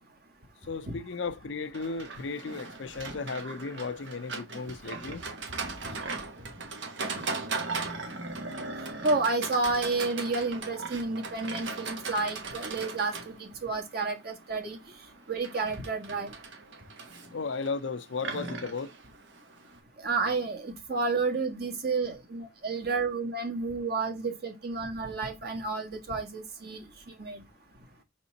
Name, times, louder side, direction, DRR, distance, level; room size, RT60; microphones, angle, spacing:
voice 1, 0.7-5.2 17.3-18.9, left 4 dB, 80° left, 0.6 m, -35 dB
Livestock farm animals working animals, 1.7-19.8, right 4 dB, 85° right, 1.4 m, -39 dB
voice 2, 8.3-8.6 9.0-14.8 15.3-16.3 20.0-26.8 27.2-27.4, right 3 dB, 55° right, 1.6 m, -31 dB
6.0 x 4.2 x 4.2 m
head